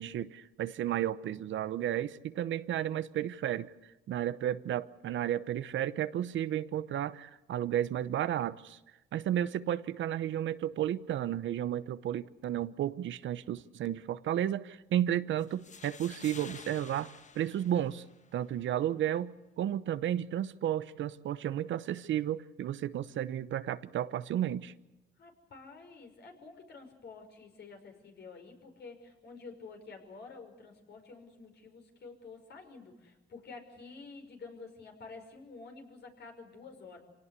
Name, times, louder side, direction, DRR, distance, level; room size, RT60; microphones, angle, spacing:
voice 1, 0.0-3.7 4.1-8.8 9.1-17.1 17.3-18.0 18.3-24.7, right 11 dB, 70° right, 1.0 m, -33 dB
sound 1, 15.4-18.4, left 5 dB, 40° left, 1.2 m, -51 dB
voice 2, 25.2-37.0, left 4 dB, 60° left, 5.6 m, -50 dB
26.5 x 18.0 x 8.3 m
cardioid pair, 90°, 20 cm